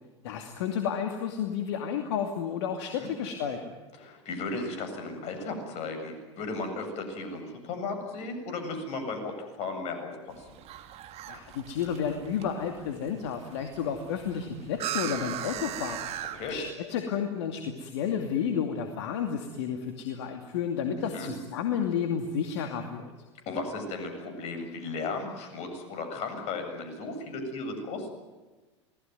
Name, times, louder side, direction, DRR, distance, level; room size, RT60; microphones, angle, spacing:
voice 1, 0.2-3.7 11.3-16.0 16.5-23.1, left 7 dB, 65° left, 5 dB, 2.5 m, -31 dB
voice 2, 4.0-10.5 16.3-16.6 21.1-21.3 23.5-28.1, left 3 dB, 45° left, 6 dB, 7.7 m, -35 dB
sound 1, 10.3-16.7, right 11 dB, 40° right, 2.4 m, -39 dB
28.0 x 19.5 x 9.4 m, 1.2 s
hypercardioid pair, 90°, 15 cm